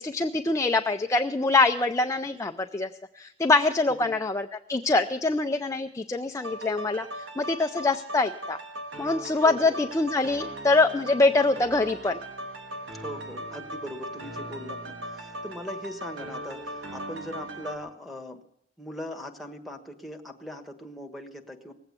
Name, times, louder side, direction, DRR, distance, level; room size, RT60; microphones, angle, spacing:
voice 1, 0.0-2.9 3.2-7.1 7.4-8.6 9.0-12.2, left 3 dB, 15° left, 5 dB, 0.5 m, -24 dB
sound 1, 6.4-17.8, right 1 dB, 85° right, 2.1 m, -38 dB
voice 2, 9.4-9.8 12.9-18.4 18.8-21.7, equal, ahead, 2 dB, 1.4 m, -40 dB
19.5 x 8.1 x 8.2 m, 0.72 s
head